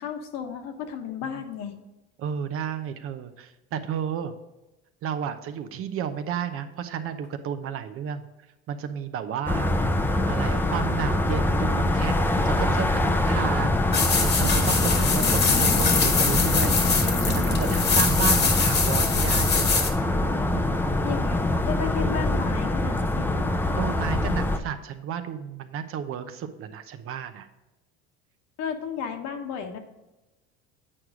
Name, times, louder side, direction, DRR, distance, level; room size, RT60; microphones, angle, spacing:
voice 1, 0.0-1.7 14.7-15.2 21.0-23.4 28.6-29.8, left 7 dB, 65° left, 5 dB, 1.3 m, -34 dB
voice 2, 2.2-4.3 5.0-8.3 8.7-9.7 10.3-13.8 14.1-19.8 20.4-20.7 23.7-27.5, right 8 dB, 50° right, 9 dB, 0.8 m, -32 dB
sound 1, 9.5-24.6, left 1 dB, 5° left, 0.6 m, -24 dB
sound 2, 13.9-19.9, left 5 dB, 35° left, 1.3 m, -24 dB
8.7 x 4.8 x 4.9 m, 1.0 s
supercardioid pair, 110°, 30 cm